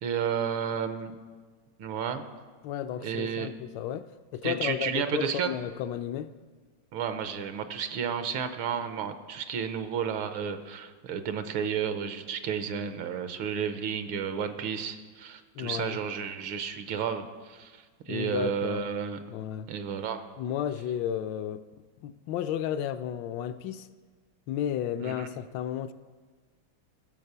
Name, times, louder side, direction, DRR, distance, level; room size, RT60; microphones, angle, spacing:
voice 1, 0.0-1.1 1.8-2.2 3.0-3.5 4.4-5.5 6.9-19.2 19.7-20.2 25.0-25.3, right 7 dB, 80° right, 1.6 m, -32 dB
voice 2, 2.6-6.3 15.5-16.0 18.1-18.8 19.3-19.7 20.4-21.6 22.0-23.9 24.5-25.9, left 10 dB, 75° left, 1.1 m, -33 dB
15.5 x 7.3 x 6.7 m
omnidirectional pair, 2.3 m